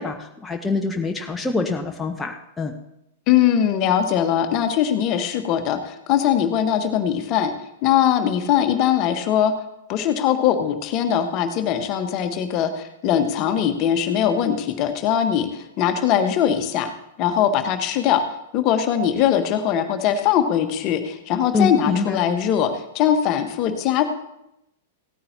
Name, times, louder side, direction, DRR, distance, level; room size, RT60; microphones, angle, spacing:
voice 1, 0.0-2.7 21.5-22.2, left 4 dB, 10° left, 3 dB, 1.0 m, -25 dB
voice 2, 3.3-7.5 7.8-9.5 9.9-16.9 17.2-18.2 18.5-24.0, left 9 dB, 35° left, 8 dB, 1.4 m, -21 dB
17.0 x 14.0 x 2.9 m, 0.85 s
figure-of-eight pair, 100°, 0 cm